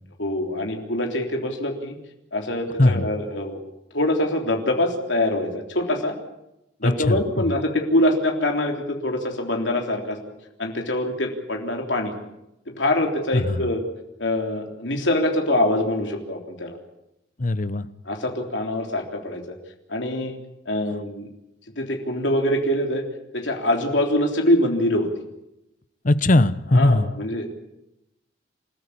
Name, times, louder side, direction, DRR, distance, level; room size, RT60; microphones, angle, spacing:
voice 1, 0.2-1.9 2.3-3.6 3.9-6.1 6.8-10.2 10.6-12.1 12.8-13.8 14.2-16.8 18.1-19.4 19.9-20.4 20.7-21.3 21.8-23.0 23.3-25.1 26.7-27.5, left 1 dB, 80° left, 2 dB, 3.5 m, -24 dB
voice 2, 6.8-7.2 13.3-13.6 17.4-17.9 26.0-27.1, left 2 dB, 45° left, 15 dB, 0.9 m, -19 dB
28.5 x 14.0 x 8.5 m, 0.87 s
head